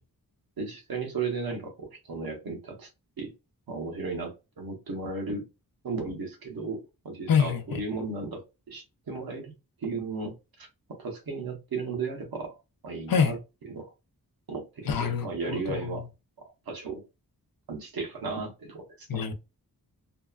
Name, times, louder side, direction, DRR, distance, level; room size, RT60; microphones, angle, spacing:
voice 1, 0.6-2.9 3.2-3.3 3.7-5.4 5.8-9.5 9.8-12.6 12.8-13.4 13.7-13.9 14.5-16.1 16.4-17.0 17.7-19.3, right 4 dB, 70° right, 1.0 m, -35 dB
voice 2, 7.3-7.8 13.1-13.4 14.9-16.0 19.1-19.3, left 7 dB, 70° left, 0.6 m, -26 dB
2.7 x 2.3 x 2.3 m
wide cardioid pair, 120°, 37 cm